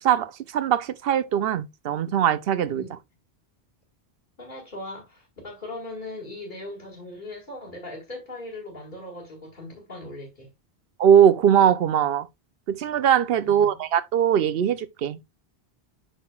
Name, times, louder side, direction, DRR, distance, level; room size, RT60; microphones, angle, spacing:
voice 1, 0.0-2.9 11.0-12.3 12.7-15.2, right 9 dB, 70° right, 0.8 m, -21 dB
voice 2, 4.4-10.5 13.4-13.8, left 2 dB, 50° left, 2.2 m, -39 dB
8.3 x 5.8 x 2.3 m
omnidirectional pair, 1.1 m